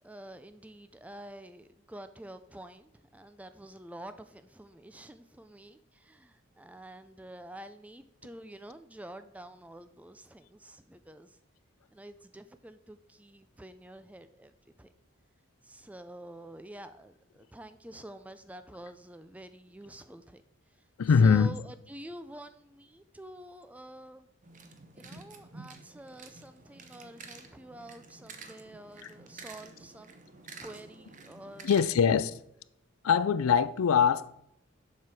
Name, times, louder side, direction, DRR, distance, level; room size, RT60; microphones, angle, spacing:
voice 1, 0.0-11.4 11.9-14.9 15.6-20.4 20.7-24.3 24.9-30.2 30.6-31.7, right 1 dB, 5° right, 0.3 m, -48 dB
voice 2, 21.0-21.5 31.6-32.4 33.0-34.3, left 6 dB, 85° left, 0.4 m, -23 dB
sound 1, 24.4-32.3, right 4 dB, 35° right, 0.8 m, -50 dB
7.3 x 5.9 x 4.7 m
head